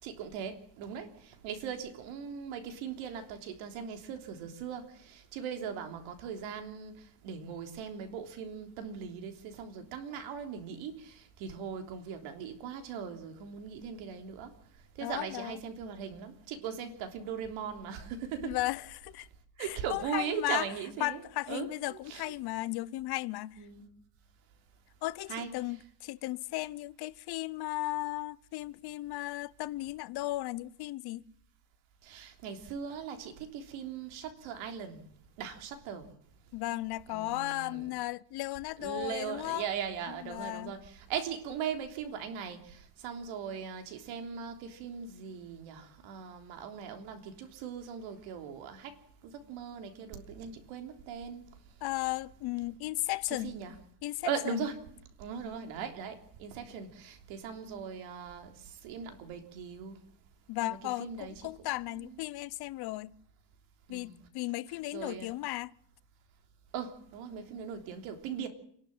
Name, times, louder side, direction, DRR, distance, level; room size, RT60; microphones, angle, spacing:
voice 1, 0.0-14.5 15.0-18.6 19.6-21.2 21.5-22.3 23.6-23.9 25.3-25.6 32.0-35.1 35.4-36.1 37.1-37.9 38.8-49.0 49.2-51.5 53.3-53.7 54.2-54.8 55.2-60.0 60.7-61.7 61.9-62.2 63.9-64.2 64.9-65.3 66.7-68.5, right 7 dB, 80° right, 3.5 m, -39 dB
voice 2, 15.0-15.6 18.4-19.3 19.6-20.7 21.0-23.7 25.0-31.2 36.5-39.7 40.2-40.7 51.8-53.5 54.0-54.7 60.5-63.2 63.9-65.7, left 18 dB, 55° left, 0.8 m, -35 dB
27.0 x 12.0 x 9.0 m
cardioid pair, 165°, 47 cm